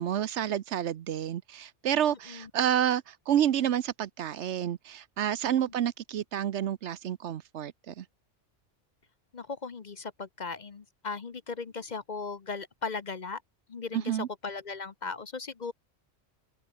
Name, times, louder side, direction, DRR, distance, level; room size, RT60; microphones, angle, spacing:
voice 1, 0.0-8.0 13.9-14.3, right 10 dB, 70° right, 1.0 m, -29 dB
voice 2, 2.1-2.5 9.3-13.4 13.7-14.0 14.4-15.7, left 4 dB, 40° left, 0.9 m, -37 dB
open air
omnidirectional pair, 1.2 m